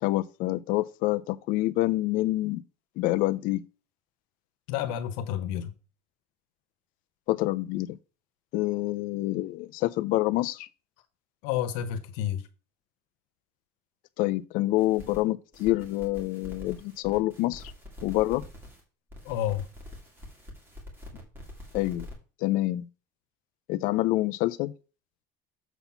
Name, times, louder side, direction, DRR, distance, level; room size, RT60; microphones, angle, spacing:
voice 1, 0.0-2.6 3.0-3.6 7.3-8.0 8.5-10.7 14.2-17.6 18.0-18.4 21.7-22.1 22.4-22.9 23.7-24.7, left 17 dB, 50° left, 0.5 m, -27 dB
voice 2, 4.7-5.7 11.4-12.5 19.2-19.7 21.1-21.2, left 10 dB, 90° left, 1.1 m, -30 dB
sound 1, 14.8-15.2 15.5-18.8 19.1-22.1, left 1 dB, 15° right, 2.0 m, -45 dB
7.0 x 4.1 x 5.7 m
cardioid pair, 175°, 17 cm